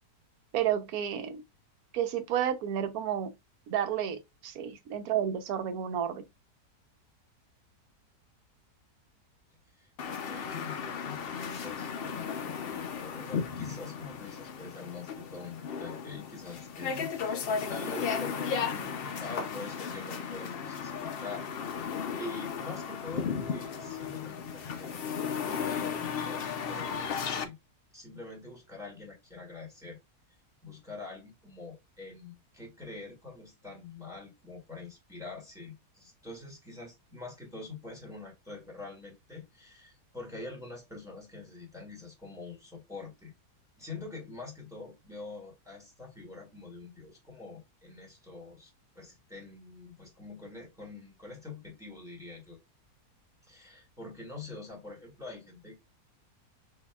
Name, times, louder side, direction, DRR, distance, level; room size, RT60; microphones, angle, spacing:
voice 1, 0.5-1.4 1.9-3.3 3.7-6.2, right 9 dB, 70° right, 1.2 m, -31 dB
voice 2, 9.8-21.5 21.8-21.9 22.2-27.6 27.9-30.0 30.6-43.3 43.8-52.6 53.4-55.8, left 3 dB, ahead, 1.9 m, -45 dB
sound 1, 10.0-27.4, left 6 dB, 75° left, 0.5 m, -35 dB
6.3 x 2.9 x 2.3 m
omnidirectional pair, 1.7 m